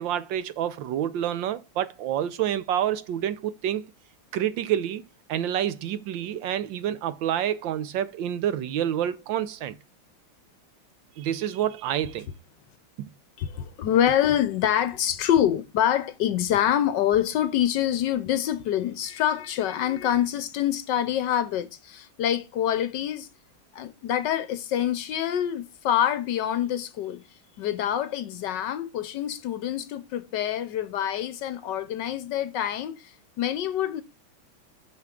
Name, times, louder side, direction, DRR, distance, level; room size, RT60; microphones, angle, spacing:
voice 1, 0.0-3.8 4.3-5.0 5.3-9.8 11.2-12.3 13.0-13.1, right 10 dB, 75° right, 1.3 m, -28 dB
voice 2, 13.4-23.3 23.7-34.0, left 10 dB, 70° left, 1.2 m, -26 dB
6.6 x 5.9 x 3.7 m
omnidirectional pair, 2.2 m